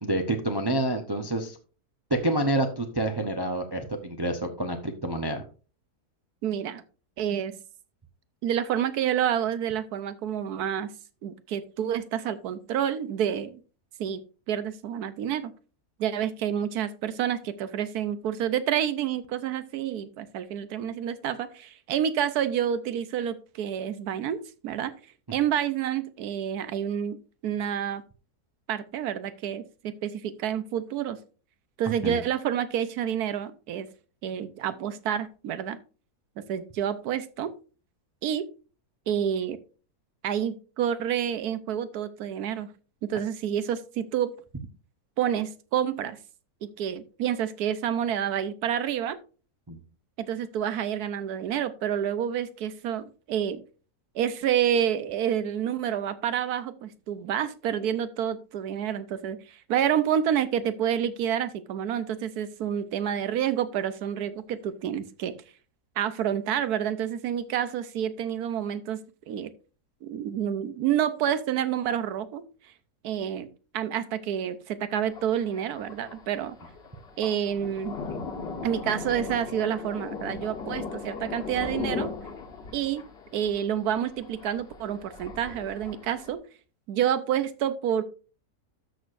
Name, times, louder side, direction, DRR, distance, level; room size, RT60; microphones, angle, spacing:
voice 1, 0.0-1.6 2.1-5.4 32.0-32.2 49.7-49.8, right 1 dB, 25° right, 5 dB, 0.5 m, -28 dB
voice 2, 6.4-6.8 7.2-7.6 8.4-10.9 11.2-13.6 14.0-14.2 14.5-15.5 16.0-24.9 25.3-27.2 27.4-28.0 28.7-31.2 31.8-33.9 34.2-35.8 36.5-37.5 38.2-38.4 39.1-39.6 40.2-42.7 43.0-44.3 45.2-46.2 46.6-49.2 50.2-53.6 54.1-65.3 66.0-69.0 69.3-69.5 70.0-72.4 73.0-73.5 73.7-76.6 77.2-78.0 78.6-82.1 82.7-83.0 83.3-86.4 86.9-88.0, right 9 dB, 75° right, 13 dB, 1.3 m, -28 dB
Thunder, 75.0-86.3, left 4 dB, 40° left, 1.5 m, -38 dB
13.0 x 6.4 x 2.5 m, 0.36 s
omnidirectional pair, 1.7 m